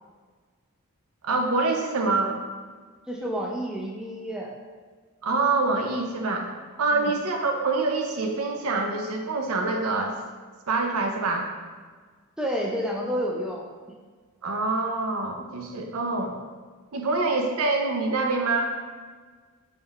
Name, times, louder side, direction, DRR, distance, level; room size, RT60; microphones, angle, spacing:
voice 1, 1.2-2.4 5.2-6.5 6.8-10.2 10.7-11.5 14.4-16.4 16.9-18.7, right 3 dB, 75° right, 3 dB, 0.5 m, -25 dB
voice 2, 3.1-4.5 6.9-7.1 12.4-13.6, equal, 5° right, -2 dB, 0.3 m, -29 dB
4.1 x 3.5 x 2.3 m, 1.5 s
head